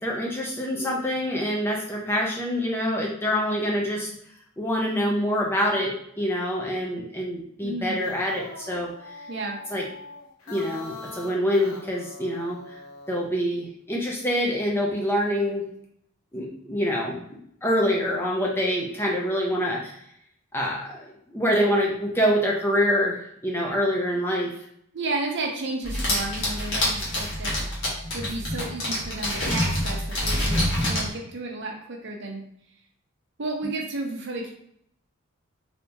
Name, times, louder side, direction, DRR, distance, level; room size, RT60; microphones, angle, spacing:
voice 1, 0.0-4.1 4.6-8.9 9.7-9.8 10.5-12.8 13.1-15.6 16.3-17.2 17.6-20.0 20.5-24.5, equal, 10° left, -2 dB, 0.4 m, -25 dB
voice 2, 7.6-8.1 9.3-9.6 24.9-27.5 28.1-32.4 33.4-34.5, right 2 dB, 55° right, 1 dB, 0.6 m, -32 dB
sound 1, 7.8-13.3, left 4 dB, 75° left, 0.7 m, -42 dB
sound 2, 25.8-31.1, left 1 dB, 60° left, 1.2 m, -26 dB
3.4 x 2.7 x 2.8 m, 0.69 s
head